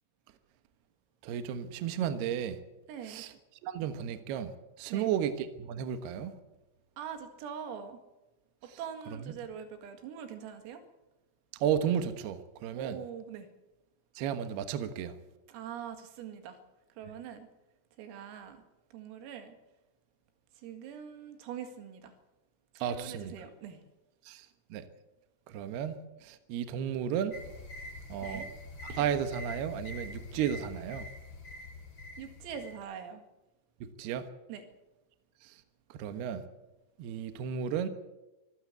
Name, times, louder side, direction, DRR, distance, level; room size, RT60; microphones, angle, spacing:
voice 1, 1.2-2.6 3.0-3.3 3.6-4.5 4.8-6.3 8.7-8.8 9.2-9.3 11.6-13.0 14.2-15.2 22.8-23.3 24.3-24.9 25.5-27.4 28.1-28.5 28.8-31.1 33.8-34.3 35.4-35.5 35.9-36.4 37.0-37.9, right 9 dB, 65° right, 9 dB, 2.8 m, -33 dB
voice 2, 2.9-3.3 4.9-5.1 7.0-8.0 8.6-10.8 12.7-13.5 15.5-16.6 17.0-17.5 18.0-18.6 18.9-19.6 20.6-22.1 22.8-23.8 28.2-28.5 32.2-33.2 34.5-34.6, right 8 dB, 85° right, 7 dB, 4.7 m, -43 dB
sound 1, 27.3-32.7, left 2 dB, 25° left, 3.5 m, -45 dB
25.0 x 15.0 x 8.1 m, 1.0 s
omnidirectional pair, 5.9 m